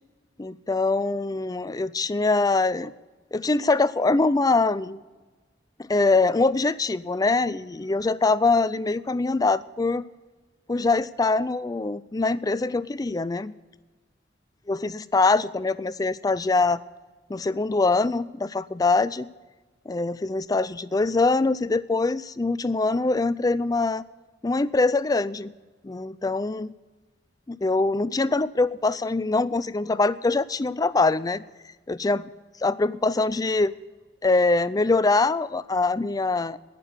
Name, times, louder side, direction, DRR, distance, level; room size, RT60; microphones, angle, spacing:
voice 1, 0.4-2.9 3.3-5.0 5.8-10.1 10.7-13.5 14.7-16.8 17.3-19.3 19.9-24.0 24.4-25.5 25.8-26.7 27.5-31.4 31.9-32.3 32.6-33.7 34.2-36.6, left 3 dB, 20° left, 17 dB, 0.4 m, -23 dB
18.0 x 6.8 x 8.0 m, 1.3 s
head